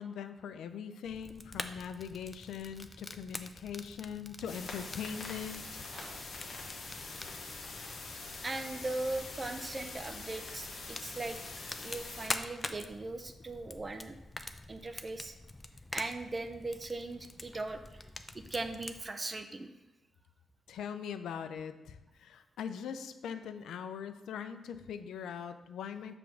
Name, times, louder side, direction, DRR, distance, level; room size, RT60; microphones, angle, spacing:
voice 1, 0.0-5.8 20.7-26.2, left 7 dB, 85° left, 10 dB, 0.5 m, -41 dB
Fire, 1.1-19.0, left 2 dB, 20° left, 0.5 m, -46 dB
sound 1, 4.5-12.3, left 3 dB, 60° left, 1.3 m, -44 dB
voice 2, 5.9-6.3 8.4-11.4 11.8-14.2 14.7-15.4 15.9-18.1 18.3-19.7, right 2 dB, 30° right, 7 dB, 0.6 m, -39 dB
6.9 x 3.5 x 6.1 m, 1.1 s
cardioid pair, 70°, 0 cm